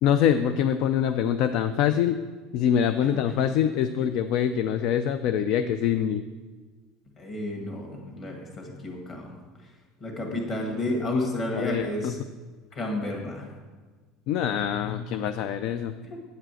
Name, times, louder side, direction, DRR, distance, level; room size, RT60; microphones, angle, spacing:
voice 1, 0.0-2.2 2.5-6.2 11.1-11.3 11.5-12.1 14.3-15.9, left 9 dB, 50° left, 10 dB, 0.3 m, -24 dB
voice 2, 3.0-3.5 7.2-9.3 10.0-12.2 12.7-13.5 16.0-16.2, left 1 dB, 25° left, 1 dB, 1.7 m, -32 dB
9.0 x 5.0 x 7.7 m, 1.4 s
cardioid pair, 170°, 0 cm